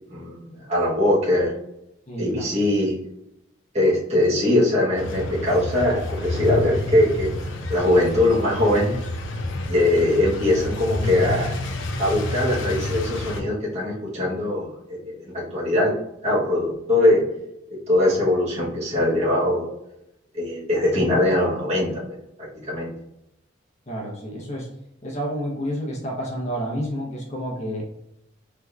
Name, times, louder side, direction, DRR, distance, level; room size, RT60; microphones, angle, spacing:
voice 1, 0.1-1.5 2.2-2.9 3.7-9.0 9.7-11.5 12.0-15.9 16.2-17.2 17.9-19.7 20.3-22.0 22.6-22.9, left 1 dB, 35° right, -6 dB, 1.1 m, -21 dB
voice 2, 2.1-2.5 23.9-24.7 25.0-27.8, equal, 35° left, -3 dB, 0.9 m, -29 dB
sound 1, 5.0-13.4, left 1 dB, 90° left, 0.5 m, -29 dB
3.5 x 2.9 x 2.4 m, 0.84 s
head